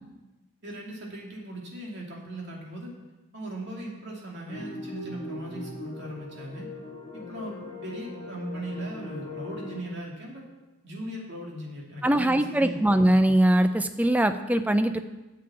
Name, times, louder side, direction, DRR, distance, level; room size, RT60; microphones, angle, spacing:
voice 1, 0.6-2.9 3.3-6.7 7.1-10.4 10.8-12.8 13.0-13.2, right 1 dB, 50° right, -2 dB, 2.7 m, -38 dB
sound 1, 4.5-9.8, left 2 dB, 25° left, 2.5 m, -40 dB
voice 2, 12.0-15.0, right 1 dB, 5° right, 9 dB, 0.4 m, -22 dB
9.6 x 7.7 x 7.4 m, 1.1 s
head